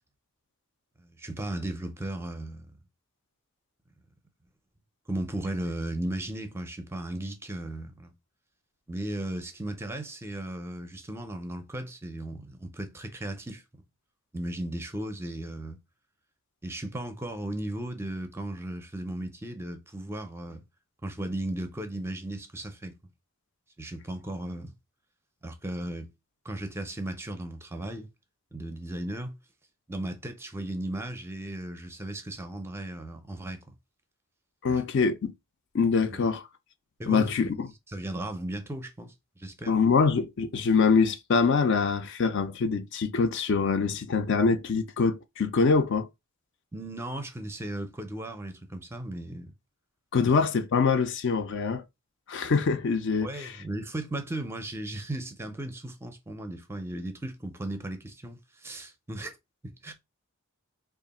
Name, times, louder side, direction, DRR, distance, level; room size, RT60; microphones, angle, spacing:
voice 1, 1.0-2.8 5.1-8.1 8.9-13.6 14.3-15.8 16.6-20.6 21.0-22.9 23.8-24.7 25.4-26.1 26.4-28.1 28.5-29.3 29.9-33.6 34.7-34.8 36.1-36.2 37.0-37.5 37.9-39.8 46.7-49.5 53.2-59.4 59.6-59.9, right 1 dB, 10° right, 0.5 m, -36 dB
voice 2, 34.6-35.3 35.7-36.4 37.1-37.7 39.7-46.1 50.1-51.8 52.3-53.6, left 5 dB, 55° left, 0.4 m, -24 dB
3.0 x 2.4 x 4.0 m
head